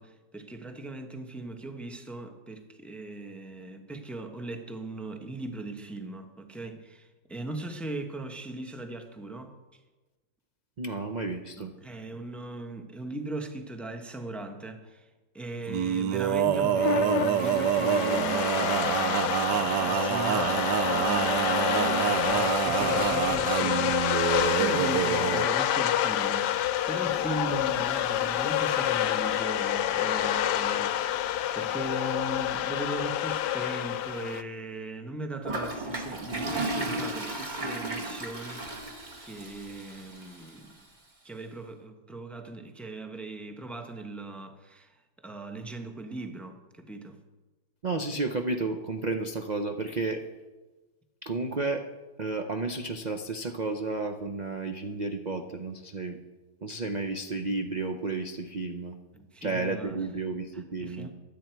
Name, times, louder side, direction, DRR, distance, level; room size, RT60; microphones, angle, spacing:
voice 1, 0.0-9.8 11.6-15.1 15.3-31.2 31.5-38.9 39.1-40.8 41.2-47.2 59.1-60.1 60.5-61.1, right 2 dB, ahead, 0.8 m, -39 dB
voice 2, 10.8-11.7 47.8-50.2 51.2-51.8 52.2-56.2 56.6-59.0 59.4-61.1, right 3 dB, 40° right, 0.6 m, -32 dB
Male singing, 15.7-25.5, right 10 dB, 80° right, 1.2 m, -27 dB
sound 1, 16.5-34.4, left 12 dB, 80° left, 1.2 m, -28 dB
Toilet flush, 35.4-40.5, right 2 dB, 25° right, 1.9 m, -34 dB
24.0 x 8.7 x 4.6 m
omnidirectional pair, 1.8 m